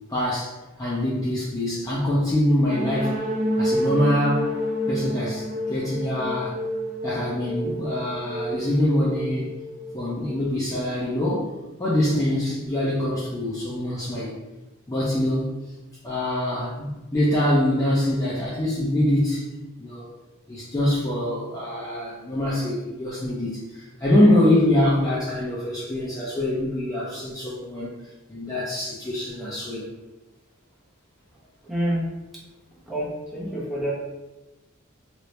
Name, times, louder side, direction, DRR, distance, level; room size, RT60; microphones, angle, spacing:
voice 1, 0.1-0.5 0.8-3.2 3.6-6.5 7.0-9.5 9.9-11.5 11.8-14.4 14.9-15.5 16.0-19.5 19.8-20.1 20.5-27.9 28.3-29.9, left 1 dB, 15° left, -7 dB, 0.5 m, -24 dB
sound 1, 2.6-10.3, equal, 40° right, 0.6 m, -29 dB
voice 2, 31.6-32.0 32.9-33.9, equal, ahead, -8 dB, 0.9 m, -27 dB
2.9 x 2.5 x 3.1 m, 1.1 s
head